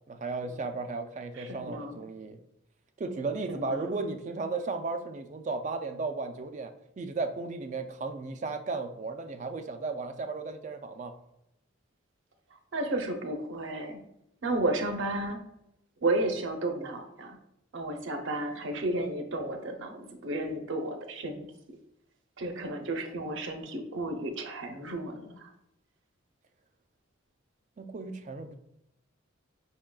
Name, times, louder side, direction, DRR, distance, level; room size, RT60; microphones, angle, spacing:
voice 1, 0.1-2.4 3.0-11.1 27.8-28.6, right 3 dB, 35° right, 7 dB, 0.3 m, -35 dB
voice 2, 1.4-2.0 3.5-3.8 12.7-14.0 14.4-15.4 16.0-17.4 17.7-21.4 22.4-25.5, right 2 dB, 65° right, 5 dB, 0.6 m, -32 dB
5.5 x 3.7 x 2.3 m, 0.81 s
head